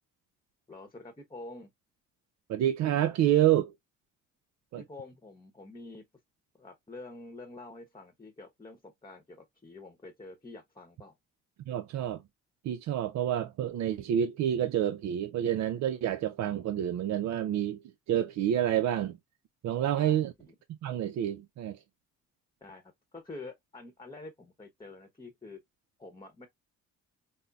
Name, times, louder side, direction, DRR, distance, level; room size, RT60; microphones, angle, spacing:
voice 1, 0.7-1.7 4.8-6.0 6.6-11.1 20.0-20.5 22.6-25.6 26.0-26.5, left 2 dB, 15° left, 0.9 m, -47 dB
voice 2, 2.5-3.7 4.7-4.8 11.7-12.2 12.6-17.8 18.1-19.2 19.6-20.3 20.7-21.8, right 11 dB, 65° right, 0.5 m, -28 dB
5.3 x 2.0 x 2.3 m
cardioid pair, 90°, 30 cm